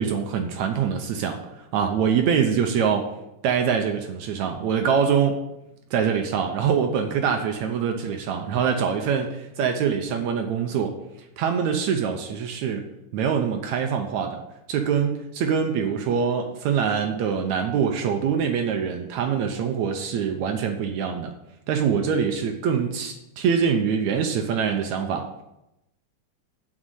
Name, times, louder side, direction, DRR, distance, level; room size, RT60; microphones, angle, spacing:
voice 1, 0.0-3.1 3.4-5.4 5.9-11.0 11.4-12.9 13.1-14.4 14.7-21.3 21.7-25.3, right 7 dB, 70° right, 5 dB, 2.1 m, -24 dB
7.8 x 6.3 x 8.0 m, 0.87 s
omnidirectional pair, 3.6 m